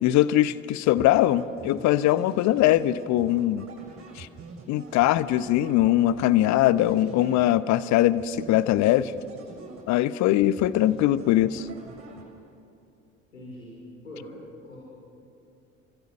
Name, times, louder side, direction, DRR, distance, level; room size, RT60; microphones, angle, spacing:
voice 1, 0.0-3.6 4.2-4.3 4.7-9.1 9.9-11.7, left 14 dB, 45° left, 17 dB, 1.0 m, -21 dB
sound 1, 1.0-7.8 8.2-10.2 10.6-12.6, right 4 dB, 35° right, 6.9 m, -46 dB
voice 2, 13.3-13.8 14.0-14.4 14.6-14.8, left 1 dB, 80° left, -5 dB, 5.1 m, -42 dB
29.5 x 24.5 x 6.5 m, 2.7 s
figure-of-eight pair, 60°, 38 cm